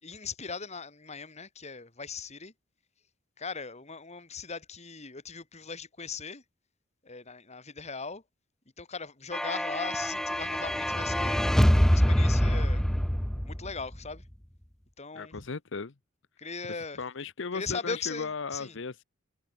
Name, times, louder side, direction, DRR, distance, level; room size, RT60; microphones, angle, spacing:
voice 1, 0.0-2.5 3.4-6.4 7.0-8.2 8.8-11.4 11.9-12.9 13.4-14.2 15.0-15.5 16.4-17.0 17.5-18.8, left 4 dB, 35° left, 2.3 m, -39 dB
sound 1, 9.3-14.0, equal, 5° left, 0.4 m, -25 dB
voice 2, 15.1-15.9 16.7-19.0, left 4 dB, 65° left, 0.8 m, -36 dB
head